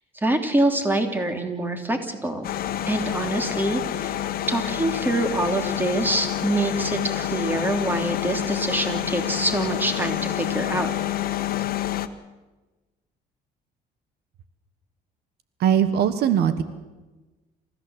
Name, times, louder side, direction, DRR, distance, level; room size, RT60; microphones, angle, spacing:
voice 1, 0.1-2.4 2.9-4.2 4.5-10.9, right 1 dB, 10° right, 6 dB, 3.2 m, -25 dB
sound 1, 2.4-12.1, left 12 dB, 60° left, 1.4 m, -28 dB
voice 2, 15.6-16.6, right 9 dB, 75° right, 12 dB, 1.4 m, -20 dB
28.0 x 15.0 x 8.1 m, 1.2 s
cardioid pair, 110°, 17 cm